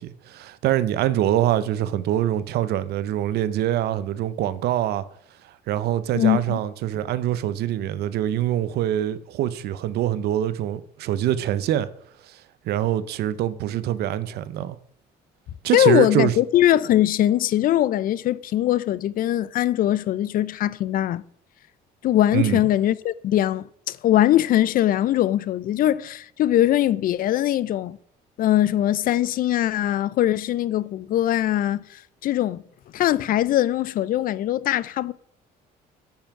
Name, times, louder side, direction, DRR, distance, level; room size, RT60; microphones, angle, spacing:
voice 1, 0.0-5.0 5.7-11.9 12.3-12.4 12.7-14.8 15.6-16.3 22.3-22.6, right 12 dB, 75° right, 0.7 m, -24 dB
voice 2, 6.1-6.6 15.7-21.2 22.0-28.0 28.4-31.8 32.2-32.6 32.9-35.1, left 12 dB, 55° left, 0.4 m, -21 dB
8.9 x 5.6 x 5.8 m
cardioid pair, 110°, 17 cm